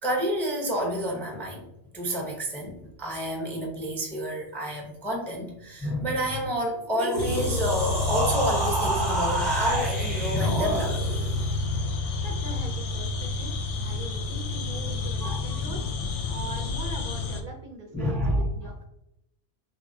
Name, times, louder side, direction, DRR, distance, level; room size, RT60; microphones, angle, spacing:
voice 1, 0.0-1.7 1.9-10.9 15.2-15.8 17.9-18.7, equal, ahead, 0 dB, 0.4 m, -29 dB
sound 1, 6.8-11.4, right 1 dB, 25° right, 0.8 m, -29 dB
sound 2, 7.2-17.4, left 3 dB, 85° left, 0.9 m, -29 dB
voice 2, 12.2-15.8 16.3-18.8, right 2 dB, 55° right, 1 dB, 0.6 m, -42 dB
3.9 x 2.8 x 2.6 m, 0.83 s
omnidirectional pair, 1.2 m